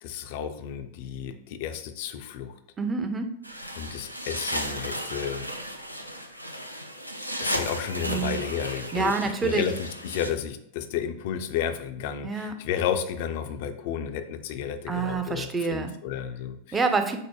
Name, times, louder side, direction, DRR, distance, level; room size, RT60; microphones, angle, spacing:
voice 1, 0.0-2.5 3.8-5.5 7.4-16.8, left 8 dB, 50° left, 8 dB, 0.4 m, -32 dB
voice 2, 2.8-3.3 8.0-8.4 8.9-9.7 12.2-12.6 14.9-15.9 16.7-17.2, right 4 dB, 15° right, 7 dB, 0.5 m, -27 dB
sound 1, 3.4-10.3, equal, 90° right, 0.4 m, -34 dB
4.7 x 2.0 x 4.6 m, 0.73 s
figure-of-eight pair, 90°, 0 cm